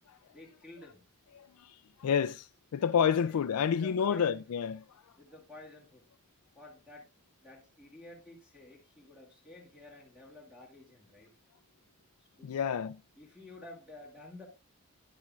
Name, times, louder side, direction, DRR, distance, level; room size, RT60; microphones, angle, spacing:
voice 1, 0.3-1.0 3.2-3.4 3.7-4.4 5.1-6.0 6.5-7.1 7.4-11.4 12.4-12.7 13.2-14.5, left 2 dB, 5° right, 2.0 m, -51 dB
voice 2, 1.3-4.8 12.4-13.0, left 7 dB, 80° left, 0.4 m, -29 dB
10.5 x 10.5 x 2.4 m
head